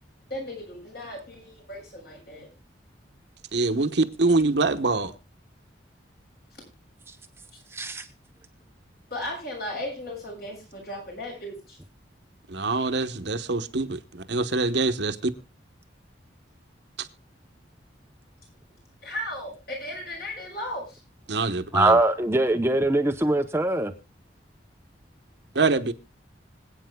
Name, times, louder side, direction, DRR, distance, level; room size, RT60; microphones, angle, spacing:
voice 1, 0.3-2.5 9.1-11.8 19.0-21.0, left 1 dB, 55° left, 1 dB, 7.1 m, -36 dB
voice 2, 3.5-5.1 12.5-15.3 17.0-17.1 21.3-22.0 25.5-25.9, right 3 dB, 65° right, 8 dB, 1.0 m, -24 dB
voice 3, 7.7-8.1 21.7-23.9, right 2 dB, 15° right, 7 dB, 0.6 m, -22 dB
26.0 x 8.8 x 2.2 m, 0.26 s
head